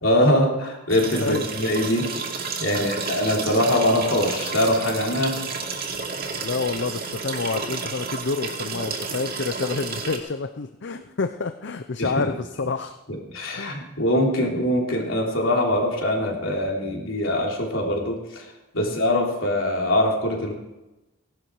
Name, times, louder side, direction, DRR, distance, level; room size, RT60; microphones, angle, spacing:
voice 1, 0.0-2.2 2.6-5.4 12.0-12.1 13.1-18.5 18.7-20.5, left 1 dB, 75° left, 0 dB, 3.5 m, -23 dB
sound 1, 0.9-10.2, right 4 dB, 50° right, 2.5 m, -31 dB
voice 2, 1.2-1.5 2.7-2.9 6.4-13.0 13.5-13.8 18.8-19.0, left 4 dB, 60° left, 9 dB, 0.6 m, -28 dB
18.0 x 11.5 x 4.7 m, 1.0 s
head